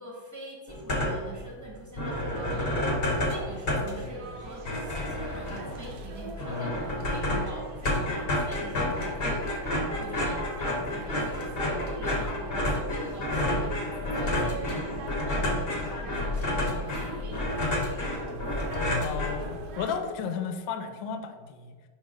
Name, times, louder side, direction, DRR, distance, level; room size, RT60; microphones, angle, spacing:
voice 1, 0.0-18.0, right 1 dB, 10° right, -3 dB, 1.0 m, -44 dB
sound 1, 0.7-1.4 1.7-1.8 2.0-19.8, left 1 dB, 40° left, 1.0 m, -30 dB
sound 2, 2.0-20.0, right 3 dB, 65° right, 1.0 m, -43 dB
voice 2, 19.0-21.7, left 6 dB, 75° left, 8 dB, 1.3 m, -33 dB
5.4 x 5.3 x 3.7 m, 1.5 s
omnidirectional pair, 2.2 m